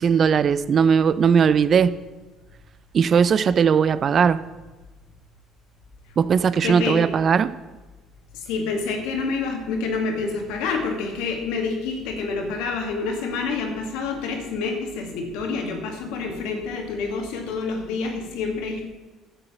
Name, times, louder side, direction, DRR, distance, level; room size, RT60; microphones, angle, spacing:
voice 1, 0.0-2.0 2.9-4.4 6.2-7.5, right 6 dB, 50° right, 16 dB, 0.5 m, -18 dB
voice 2, 6.6-7.0 8.3-18.8, left 4 dB, 75° left, 2 dB, 2.3 m, -27 dB
11.0 x 7.0 x 7.1 m, 1.2 s
hypercardioid pair, 65°, 0 cm